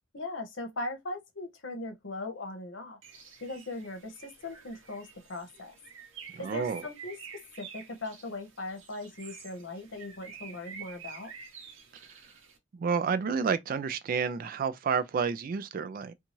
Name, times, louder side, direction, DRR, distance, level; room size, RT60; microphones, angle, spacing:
voice 1, 0.1-3.0 3.4-5.7 6.4-7.2 7.6-11.3, left 2 dB, 75° left, 0.9 m, -39 dB
Bird, 3.0-12.6, right 6 dB, 85° right, 0.8 m, -49 dB
voice 2, 6.3-6.8 12.7-16.1, right 6 dB, 45° right, 0.3 m, -30 dB
2.7 x 2.3 x 2.9 m
head